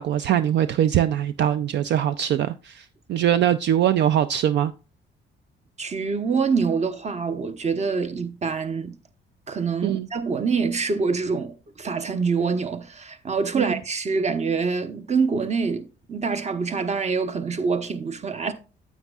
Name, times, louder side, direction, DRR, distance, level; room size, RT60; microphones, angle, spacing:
voice 1, 0.0-4.7 9.8-10.1 13.6-13.8, right 10 dB, 65° right, 0.4 m, -22 dB
voice 2, 5.8-9.0 9.5-18.5, right 5 dB, 35° right, 0.9 m, -25 dB
9.3 x 8.2 x 2.4 m
cardioid pair, 90°, 20 cm